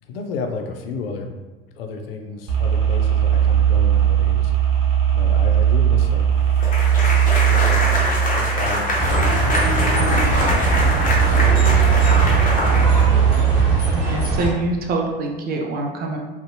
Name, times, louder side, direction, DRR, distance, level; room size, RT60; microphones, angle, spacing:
voice 1, 0.1-1.3 1.8-4.5 5.1-6.3 7.4-13.1, left 4 dB, 75° left, 4 dB, 0.5 m, -32 dB
sound 1, 2.5-13.9, right 9 dB, 45° right, 0.9 m, -18 dB
sound 2, 6.6-13.4, left 1 dB, 25° left, 0.7 m, -24 dB
sound 3, 9.0-14.5, right 1 dB, 90° right, 1.1 m, -22 dB
voice 2, 13.9-16.2, right 2 dB, 30° right, 1 dB, 0.5 m, -25 dB
2.6 x 2.1 x 2.6 m, 1.2 s
hypercardioid pair, 75°, 30 cm